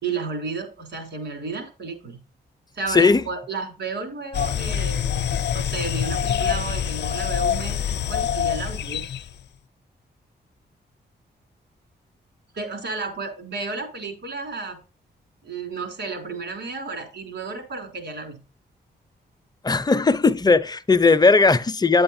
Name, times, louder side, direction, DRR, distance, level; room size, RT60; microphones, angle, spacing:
voice 1, 0.0-2.2 2.7-5.1 5.5-9.1 12.5-14.8 15.4-18.4, right 4 dB, 75° right, 3.7 m, -32 dB
voice 2, 2.9-3.2 19.6-22.0, left 4 dB, 20° left, 0.6 m, -17 dB
sound 1, 4.3-9.3, left 9 dB, 70° left, 0.6 m, -25 dB
9.5 x 7.9 x 2.6 m
cardioid pair, 105°, 18 cm